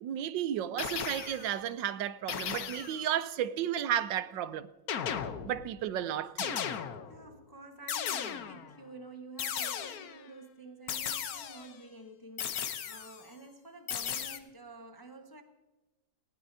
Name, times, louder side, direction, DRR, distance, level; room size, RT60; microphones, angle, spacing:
voice 1, 0.0-4.7 5.4-6.6, right 10 dB, 75° right, 1.3 m, -33 dB
sound 1, 0.8-1.6 2.3-3.1 4.9-5.7 6.4-7.2 7.9-8.7 9.4-10.3 10.9-11.8 12.4-13.2 13.9-14.4, left 8 dB, 60° left, 1.2 m, -36 dB
voice 2, 7.1-15.4, right 2 dB, 20° left, 0.6 m, -50 dB
19.5 x 15.5 x 2.7 m
omnidirectional pair, 2.0 m